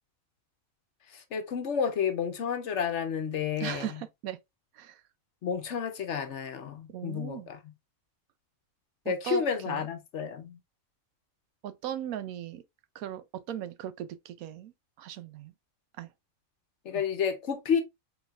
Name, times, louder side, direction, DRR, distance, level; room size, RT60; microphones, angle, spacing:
voice 1, 1.1-4.0 5.4-7.7 9.1-10.6 16.8-17.8, left 7 dB, 60° left, 1.0 m, -31 dB
voice 2, 3.6-4.4 4.8-5.0 6.9-7.5 9.1-9.9 11.6-12.6 12.9-14.7 15.0-15.5 16.0-16.1 16.9-17.0, right 11 dB, 90° right, 1.1 m, -38 dB
4.7 x 4.0 x 2.4 m
omnidirectional pair, 1.4 m